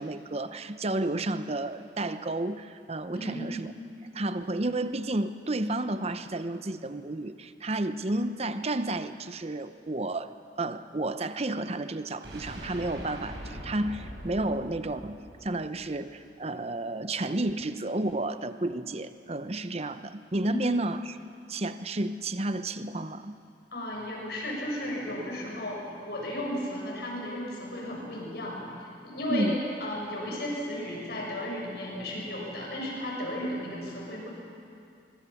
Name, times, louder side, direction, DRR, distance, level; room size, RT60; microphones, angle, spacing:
voice 1, 0.0-3.7 4.1-10.3 10.6-21.2 21.5-23.4 29.3-29.6, right 2 dB, 35° right, 11 dB, 0.8 m, -31 dB
voice 2, 3.1-3.7 20.5-20.8 23.7-25.8 26.1-28.6 29.0-34.3, equal, 65° left, -2 dB, 7.3 m, -34 dB
sound 1, 12.2-16.2, equal, 80° right, 5.4 m, -42 dB
24.5 x 23.0 x 7.2 m, 2.4 s
head